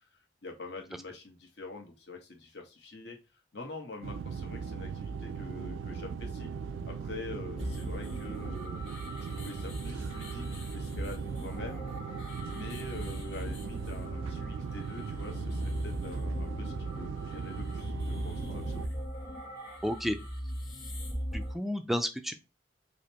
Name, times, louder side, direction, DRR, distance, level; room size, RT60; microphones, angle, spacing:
voice 1, 0.4-6.5 6.8-8.8 9.2-11.9 12.4-18.9, left 2 dB, 60° left, 2 dB, 1.0 m, -45 dB
sound 1, 4.0-18.9, right 5 dB, 90° right, 0.3 m, -38 dB
sound 2, 7.6-21.5, equal, 40° left, 1.8 m, -39 dB
voice 2, 19.8-20.2 21.3-22.3, equal, ahead, 8 dB, 0.3 m, -31 dB
5.0 x 2.1 x 2.9 m, 0.27 s
head